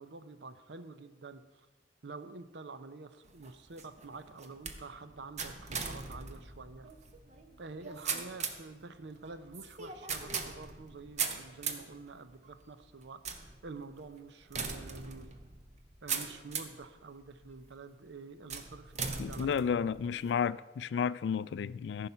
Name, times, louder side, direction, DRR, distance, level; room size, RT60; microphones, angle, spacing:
voice 1, 0.0-1.7 2.0-6.9 7.6-15.3 16.0-19.9 20.1-20.4, right 3 dB, 80° right, 0.7 m, -48 dB
sound 1, 3.2-16.9 17.4-17.9 18.5-20.3, right 5 dB, 40° right, 0.9 m, -40 dB
voice 2, 19.2-22.1, left 7 dB, 70° left, 0.3 m, -32 dB
14.0 x 5.5 x 5.6 m
head